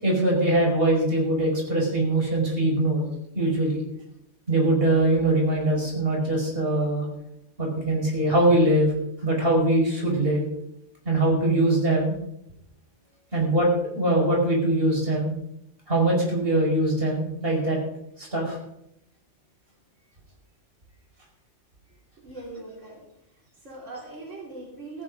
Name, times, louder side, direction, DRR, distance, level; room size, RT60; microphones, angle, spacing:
voice 1, 0.0-3.0 3.3-3.8 4.5-7.1 7.6-8.9 9.2-10.4 11.1-12.1 13.3-13.7 13.9-15.3 15.9-17.8 18.2-18.6, right 1 dB, 50° right, -2 dB, 5.6 m, -22 dB
voice 2, 22.2-23.0 23.3-25.0, right 2 dB, 80° right, -3 dB, 3.9 m, -41 dB
15.5 x 14.5 x 3.8 m, 0.79 s
omnidirectional pair, 1.3 m